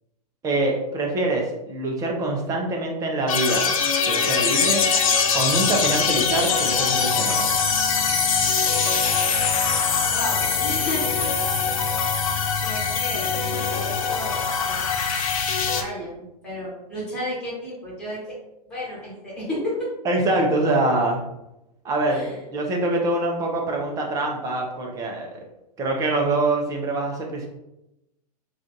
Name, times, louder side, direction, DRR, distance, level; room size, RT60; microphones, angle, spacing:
voice 1, 0.4-3.8 4.1-4.8 5.3-7.5 20.0-21.2 21.8-25.4 25.8-27.5, right 2 dB, 15° right, 0 dB, 0.6 m, -24 dB
sound 1, 3.3-15.8, left 5 dB, 55° left, 0.5 m, -22 dB
voice 2, 10.1-11.2 12.6-14.4 14.6-14.9 15.7-18.4 18.7-19.9 22.1-22.4, left 1 dB, 5° left, -8 dB, 1.3 m, -33 dB
2.5 x 2.5 x 3.8 m, 0.89 s
figure-of-eight pair, 110°, 21 cm